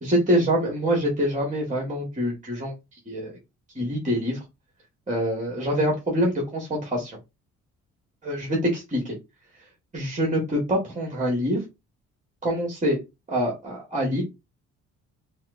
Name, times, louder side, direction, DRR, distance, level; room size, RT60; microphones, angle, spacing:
voice 1, 0.0-2.7 3.1-3.4 3.7-4.4 5.1-7.2 8.2-9.2 9.9-11.6 12.4-13.0 13.3-14.2, equal, 25° right, -1 dB, 1.5 m, -25 dB
4.3 x 2.1 x 2.4 m, 0.23 s
cardioid pair, 90°, 30 cm